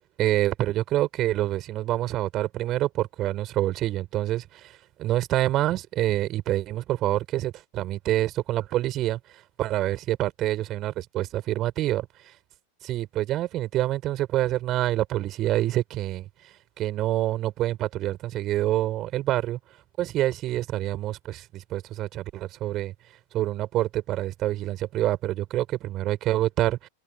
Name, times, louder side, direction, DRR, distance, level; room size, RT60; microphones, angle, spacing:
voice 1, 0.2-12.3 12.8-16.3 16.8-19.6 20.0-22.9 23.3-26.9, right 14 dB, 35° right, 5.4 m, -27 dB
figure-of-eight pair, 90°, 0 cm